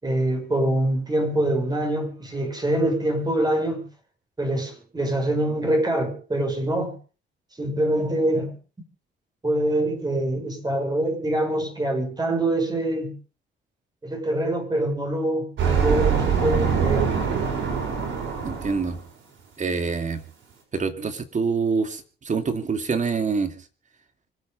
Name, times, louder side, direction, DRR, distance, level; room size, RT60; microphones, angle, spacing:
voice 1, 0.0-3.8 4.4-7.0 7.6-8.6 9.4-13.1 14.0-17.1, right 1 dB, 20° right, 6.3 m, -24 dB
sound 1, 15.6-19.0, right 6 dB, 70° right, 7.6 m, -23 dB
voice 2, 18.4-19.0 19.6-20.2 20.7-23.6, right 5 dB, 40° right, 2.7 m, -26 dB
25.5 x 9.4 x 5.4 m
cardioid pair, 90°, 20 cm